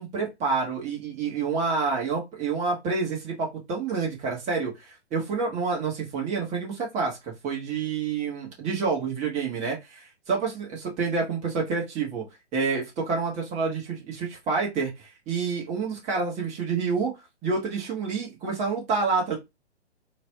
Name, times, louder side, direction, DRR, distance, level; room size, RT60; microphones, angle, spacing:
voice 1, 0.0-12.2 12.5-17.1 17.4-19.4, right 4 dB, 20° right, -2 dB, 1.9 m, -28 dB
3.9 x 3.3 x 3.5 m, 0.21 s
hypercardioid pair, 135°, 35 cm